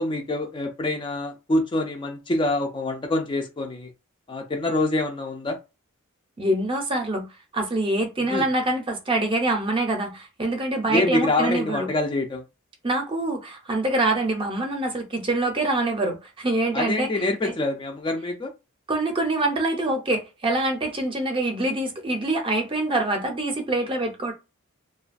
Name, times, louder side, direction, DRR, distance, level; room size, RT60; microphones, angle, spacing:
voice 1, 0.0-3.9 4.3-5.6 8.3-8.5 10.9-12.4 16.7-18.5, left 2 dB, 25° left, 0.4 m, -25 dB
voice 2, 6.4-7.3 7.5-11.9 12.8-17.1 17.4-17.5 18.9-24.3, right 2 dB, 25° right, 0.6 m, -25 dB
2.4 x 2.2 x 2.5 m
head